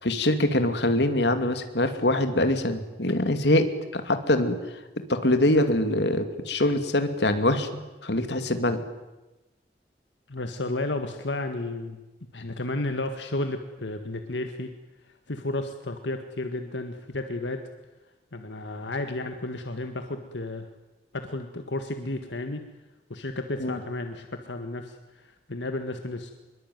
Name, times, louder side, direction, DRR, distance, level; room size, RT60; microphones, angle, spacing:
voice 1, 0.0-4.6 5.0-8.8 23.6-23.8, left 1 dB, 70° left, 8 dB, 2.6 m, -24 dB
voice 2, 10.3-12.0 12.3-14.7 15.0-17.6 18.3-20.7 21.1-22.6 23.1-26.3, left 2 dB, 90° left, 7 dB, 1.8 m, -32 dB
24.0 x 22.5 x 9.4 m, 1.1 s
head